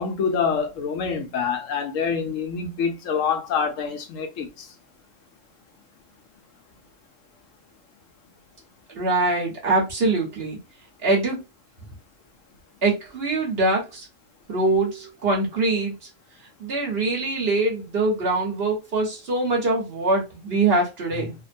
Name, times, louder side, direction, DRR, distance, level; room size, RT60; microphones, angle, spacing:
voice 1, 0.0-4.7, left 6 dB, 80° left, 1.0 m, -26 dB
voice 2, 9.0-10.6 11.0-11.4 12.8-14.1 14.5-15.9 16.6-21.3, right 2 dB, 50° right, 1.2 m, -23 dB
2.9 x 2.1 x 2.5 m
omnidirectional pair, 1.3 m